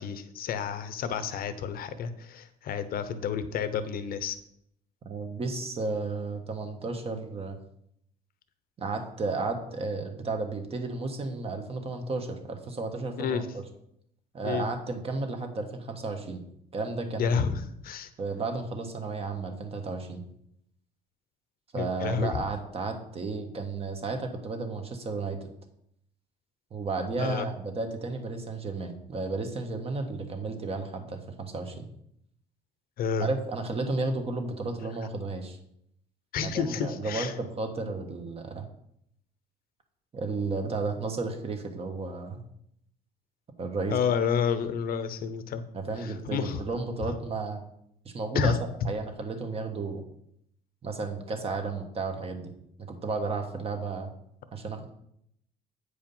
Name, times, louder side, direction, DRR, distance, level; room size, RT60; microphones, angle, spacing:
voice 1, 0.0-4.4 13.2-13.4 14.4-14.7 17.2-18.1 21.8-22.3 27.2-27.5 33.0-33.3 36.3-37.3 43.9-45.6 46.0-46.6 48.3-48.6, left 7 dB, 60° left, 12 dB, 0.9 m, -30 dB
voice 2, 5.0-7.6 8.8-13.4 14.3-16.4 16.7-17.5 18.2-20.2 21.7-25.5 26.7-31.9 33.2-35.6 36.4-38.6 40.1-42.4 43.6-44.2 45.7-47.6 48.0-48.6 48.8-50.0 50.8-52.5 52.8-54.1 54.5-54.9, right 3 dB, 35° right, 5 dB, 1.4 m, -33 dB
8.3 x 4.9 x 5.5 m, 0.74 s
cardioid pair, 110°, 17 cm